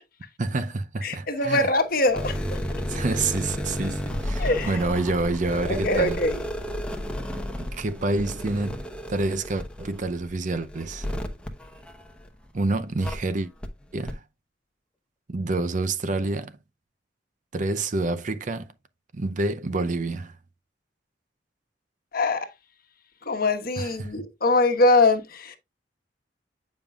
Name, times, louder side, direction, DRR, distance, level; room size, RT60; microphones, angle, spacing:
voice 1, 0.4-1.7 2.9-6.2 7.6-8.8 9.1-11.1 12.5-13.5 13.9-14.2 15.3-16.5 17.5-18.7 19.1-20.3 23.8-24.1, right 2 dB, 45° right, 0.6 m, -28 dB
voice 2, 1.0-2.6 4.4-4.8 5.7-6.4 22.1-22.5 23.3-25.6, left 2 dB, 55° left, 1.3 m, -23 dB
sound 1, 2.1-12.5 13.0-13.2 13.6-13.7 14.1-14.2, equal, 5° left, 0.9 m, -32 dB
8.8 x 5.3 x 2.4 m
head